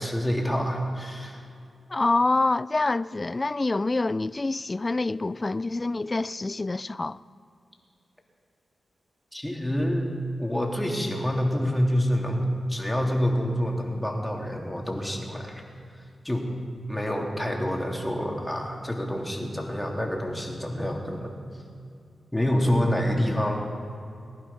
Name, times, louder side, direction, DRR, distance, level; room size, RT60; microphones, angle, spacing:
voice 1, 0.0-1.4 9.3-15.6 16.2-16.5 16.9-21.4 22.3-23.7, equal, 10° left, 3.4 m, -27 dB
voice 2, 1.9-7.2, left 2 dB, 35° left, 0.4 m, -26 dB
19.0 x 11.0 x 5.8 m
supercardioid pair, 40°, 0 cm